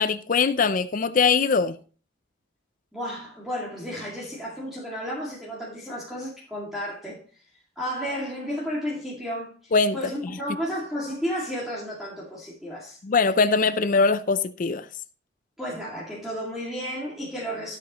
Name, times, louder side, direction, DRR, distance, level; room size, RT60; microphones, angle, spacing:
voice 1, 0.0-1.8 9.7-10.0 13.0-14.9, left 4 dB, 40° left, 0.4 m, -21 dB
voice 2, 2.9-7.4 7.8-13.0 15.6-17.8, equal, ahead, 2.2 m, -33 dB
12.5 x 8.0 x 3.0 m
head